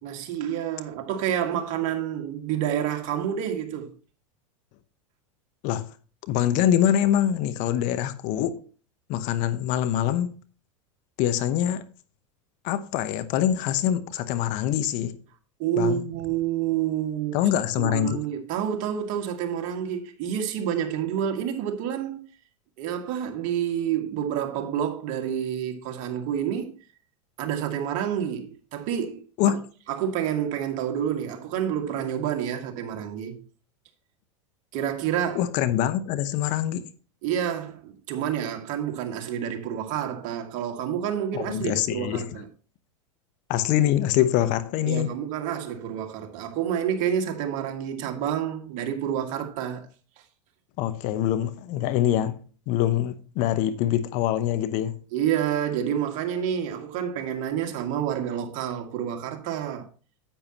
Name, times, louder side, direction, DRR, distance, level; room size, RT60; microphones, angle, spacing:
voice 1, 0.0-3.9 15.6-17.5 17.8-22.2 22.8-26.7 27.4-29.6 29.9-33.4 34.7-35.5 37.2-42.5 44.9-49.9 55.1-59.9, right 9 dB, 50° right, 1.9 m, -28 dB
voice 2, 6.3-8.6 9.1-10.4 11.2-11.9 12.6-15.2 15.8-16.0 17.3-18.2 29.4-29.6 35.3-36.9 41.3-42.3 43.5-45.1 50.8-52.4 52.7-55.0, left 11 dB, 50° left, 0.9 m, -24 dB
10.0 x 8.8 x 2.9 m
hypercardioid pair, 105°, 16 cm